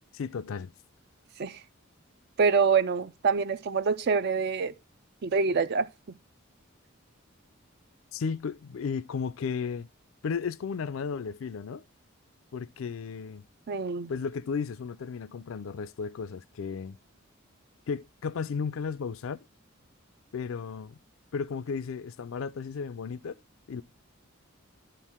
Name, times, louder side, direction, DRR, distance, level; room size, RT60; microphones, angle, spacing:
voice 1, 0.2-0.7 8.1-9.9 10.2-11.8 12.5-13.5 14.1-17.0 17.9-19.5 20.3-21.0 21.3-23.4 23.7-23.8, left 5 dB, 75° left, 0.4 m, -34 dB
voice 2, 2.4-4.7 5.2-5.9 13.7-14.1, right 5 dB, 50° right, 0.4 m, -25 dB
11.5 x 4.5 x 3.5 m
head